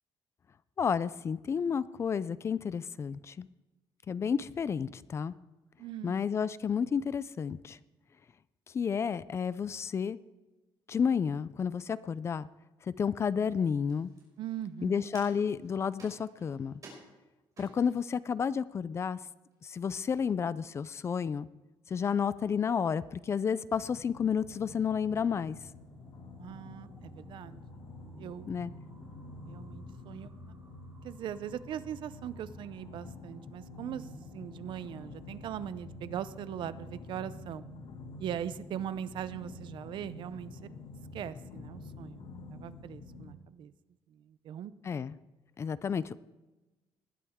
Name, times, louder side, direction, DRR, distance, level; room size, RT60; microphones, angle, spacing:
voice 1, 0.8-3.5 4.1-5.3 6.0-7.8 8.7-10.2 10.9-12.5 13.0-14.1 14.8-16.7 17.6-19.2 19.6-21.5 21.9-25.6 28.5-28.7 44.8-45.2 45.6-46.1, left 6 dB, 30° left, 17 dB, 0.4 m, -31 dB
voice 2, 5.8-6.3 14.4-15.1 26.4-27.6 28.2-28.5 29.5-30.3 31.0-34.1 34.3-37.7 38.2-40.7 41.1-43.7 44.1-44.7, right 10 dB, 65° right, 14 dB, 0.6 m, -40 dB
sound 1, 13.4-18.1 18.8-18.9 19.1-19.6, right 2 dB, 40° right, 5.5 m, -56 dB
sound 2, 23.0-37.3, right 4 dB, 25° right, 3.3 m, -63 dB
sound 3, 23.7-43.3, left 2 dB, 80° left, 2.0 m, -48 dB
19.5 x 12.0 x 3.6 m, 1.1 s
cardioid pair, 165°, 9 cm